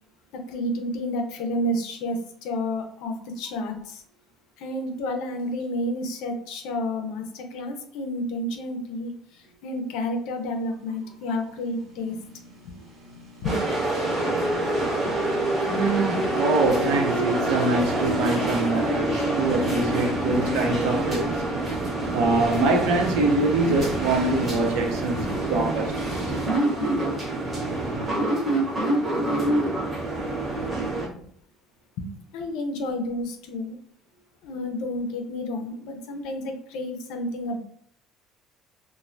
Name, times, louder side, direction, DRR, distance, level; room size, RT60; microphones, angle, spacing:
voice 1, 0.3-4.0 4.6-12.2 12.6-12.7 13.4-13.6 30.9-31.2 32.0-33.8 34.4-37.6, left 1 dB, 70° left, 0.5 m, -30 dB
sound 1, 9.9-18.3, left 1 dB, 55° right, 1.0 m, -43 dB
sound 2, 13.4-31.1, right 2 dB, 15° right, 0.8 m, -26 dB
voice 2, 15.7-21.4 22.1-25.2 25.5-26.2, right 2 dB, 85° right, 0.6 m, -24 dB
3.2 x 2.1 x 2.5 m
cardioid pair, 180°, 0 cm